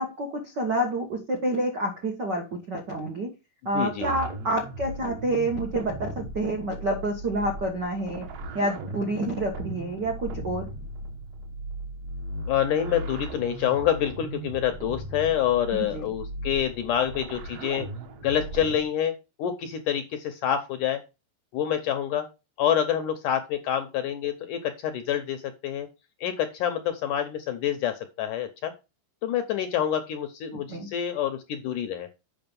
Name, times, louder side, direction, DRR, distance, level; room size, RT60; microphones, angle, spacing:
voice 1, 0.0-3.3 3.6-8.2 8.5-10.7 15.7-16.1 30.5-30.9, right 1 dB, 80° right, 2 dB, 0.9 m, -28 dB
voice 2, 3.7-4.1 12.5-17.9 18.2-21.0 21.5-22.3 22.6-25.9 26.2-28.7 29.2-32.1, left 10 dB, 75° left, 7 dB, 1.9 m, -27 dB
sound 1, 4.0-18.8, right 1 dB, 60° right, 1.9 m, -37 dB
7.8 x 6.1 x 5.3 m, 0.28 s
omnidirectional pair, 4.5 m